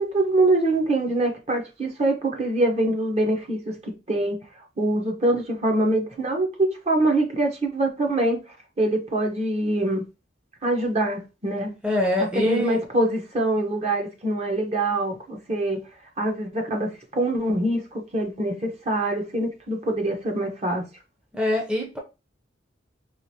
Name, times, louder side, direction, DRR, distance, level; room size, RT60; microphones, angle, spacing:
voice 1, 0.0-4.4 4.8-8.4 8.8-10.0 10.6-11.7 12.3-15.8 16.2-20.8, right 1 dB, 35° right, 1.0 m, -24 dB
voice 2, 11.8-12.8 21.3-22.0, left 1 dB, 5° right, 0.7 m, -24 dB
4.8 x 2.5 x 2.9 m
head